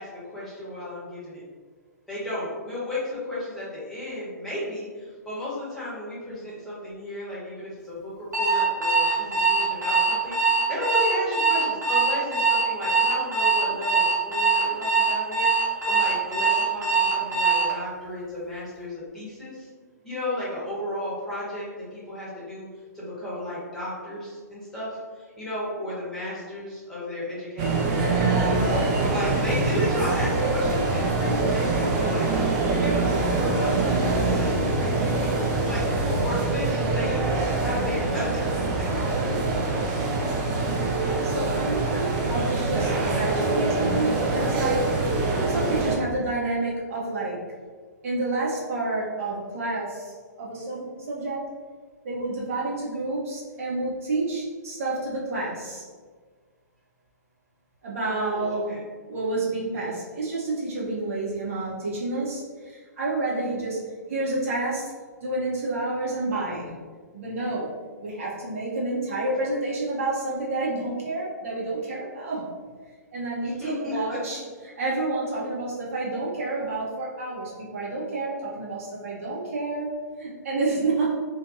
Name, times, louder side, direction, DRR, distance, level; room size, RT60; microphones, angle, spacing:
voice 1, 0.0-1.4 2.1-19.7 20.0-22.7 22.9-28.2 29.0-38.4 38.7-39.3 58.0-58.8 73.4-74.2, left 1 dB, 5° left, -10 dB, 1.1 m, -34 dB
Alarm, 8.3-17.7, right 4 dB, 80° right, 1.0 m, -22 dB
sound 1, 27.6-46.0, right 3 dB, 30° right, 0.4 m, -24 dB
voice 2, 41.0-44.9 45.5-47.4 48.0-51.4 52.0-55.8 57.8-58.7 59.1-63.8 64.1-64.9 65.2-66.7 67.1-67.7 68.0-72.5 73.1-74.4 74.8-81.1, right 2 dB, 50° right, -5 dB, 0.9 m, -29 dB
2.6 x 2.5 x 2.7 m, 1.5 s
figure-of-eight pair, 120°, 10 cm